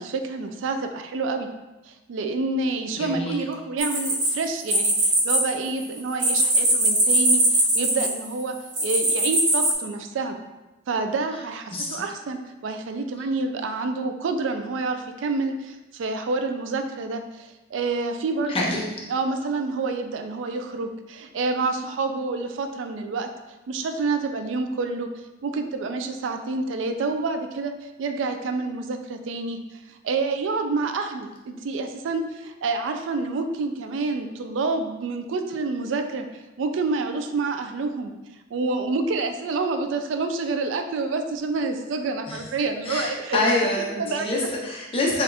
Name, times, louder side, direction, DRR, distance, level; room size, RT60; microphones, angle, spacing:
voice 1, 0.0-1.5 1.9-8.5 8.8-10.4 10.9-18.8 19.1-23.3 23.7-25.1 25.4-36.3 36.6-38.1 38.5-43.4 43.8-44.5, right 3 dB, 80° right, 6 dB, 0.4 m, -28 dB
voice 2, 3.0-3.4 11.7-12.0 18.5-18.8 42.3-42.4 42.8-45.2, left 2 dB, 30° left, -3 dB, 0.8 m, -26 dB
sound 1, 3.8-5.4 5.6-8.2 8.7-9.7, right 1 dB, 45° right, 1.1 m, -21 dB
4.1 x 2.4 x 3.4 m, 1.1 s
head